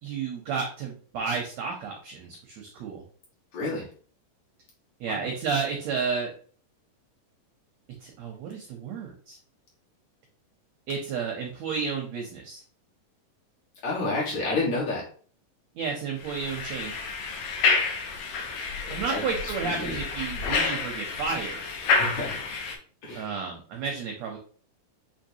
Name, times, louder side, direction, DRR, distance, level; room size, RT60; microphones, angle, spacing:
voice 1, 0.0-3.0 5.0-6.3 8.0-9.4 10.9-12.6 15.7-16.9 18.9-21.6 23.1-24.4, right 5 dB, 80° right, 1 dB, 1.5 m, -32 dB
voice 2, 3.5-3.9 5.1-5.3 13.8-15.1 18.8-20.0 21.8-22.4 23.0-23.3, left 2 dB, 60° left, -5 dB, 2.6 m, -30 dB
sound 1, 16.2-22.8, left 4 dB, 80° left, 2.3 m, -29 dB
6.4 x 2.9 x 2.7 m, 0.43 s
omnidirectional pair, 3.9 m